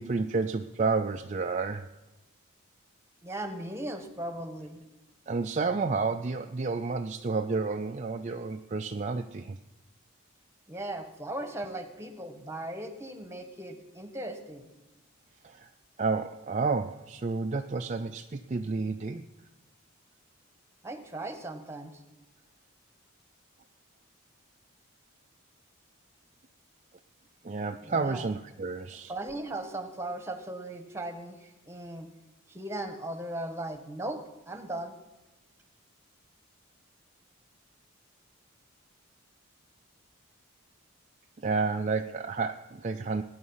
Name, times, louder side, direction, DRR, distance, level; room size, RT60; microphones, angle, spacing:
voice 1, 0.0-1.9 5.3-9.6 15.4-15.7 16.0-19.2 27.4-29.1 41.4-43.2, right 4 dB, 35° right, 5 dB, 0.4 m, -30 dB
voice 2, 3.2-4.8 10.7-14.7 20.8-22.0 27.8-28.3 29.1-32.1 32.5-34.9, right 1 dB, 10° right, 8 dB, 1.2 m, -38 dB
19.0 x 9.6 x 5.6 m, 1.1 s
head